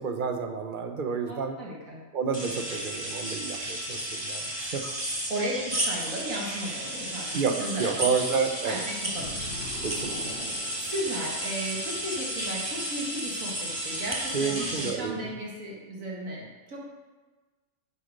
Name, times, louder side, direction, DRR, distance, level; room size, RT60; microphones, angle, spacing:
voice 1, 0.0-1.6 2.1-4.8 7.3-8.8 9.8-10.2 14.3-15.3, right 5 dB, 40° right, 5 dB, 1.0 m, -30 dB
voice 2, 1.3-2.0 5.3-8.1 8.7-9.5 10.7-16.8, right 1 dB, 80° right, -3 dB, 2.1 m, -35 dB
sound 1, 2.3-14.9, right 1 dB, 20° right, 1.8 m, -33 dB
sound 2, 9.1-11.6, left 2 dB, 50° left, 3.0 m, -42 dB
9.6 x 8.3 x 5.3 m, 1.2 s
omnidirectional pair, 1.4 m